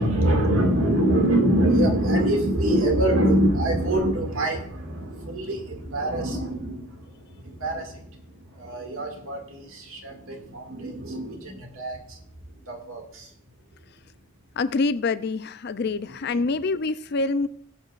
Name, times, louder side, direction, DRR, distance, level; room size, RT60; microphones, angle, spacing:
voice 1, 0.0-8.2 8.5-12.2 12.7-13.3 16.1-16.2, right 1 dB, 75° right, 2.2 m, -24 dB
voice 2, 14.6-17.5, left 3 dB, 50° left, 0.4 m, -26 dB
19.0 x 7.7 x 2.5 m
head